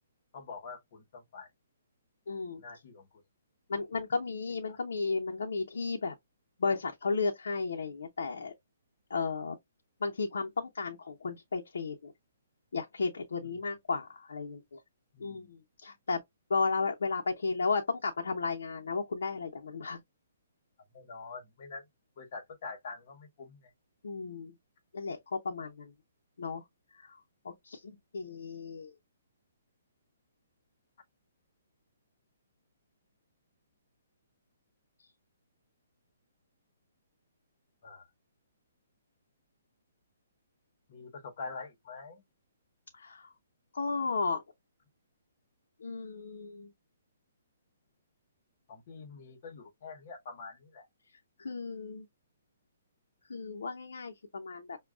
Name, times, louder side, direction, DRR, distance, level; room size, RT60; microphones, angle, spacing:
voice 1, 0.3-1.5 2.6-3.1 4.7-4.8 13.4-13.6 15.1-15.5 20.9-21.8 22.2-23.7 37.8-38.1 40.9-42.2 48.7-50.9, left 4 dB, 45° left, 1.0 m, -45 dB
voice 2, 2.3-2.6 3.7-6.1 6.6-8.5 9.1-9.6 10.0-12.1 12.7-14.8 15.2-16.2 16.5-20.0 24.0-24.5 24.9-25.9 26.4-26.6 26.9-27.2 27.4-28.9 42.9-43.3 43.7-44.4 45.8-46.7 51.4-52.1 53.3-54.8, left 4 dB, 80° left, 0.7 m, -34 dB
6.0 x 2.3 x 2.3 m
hypercardioid pair, 160°, 0 cm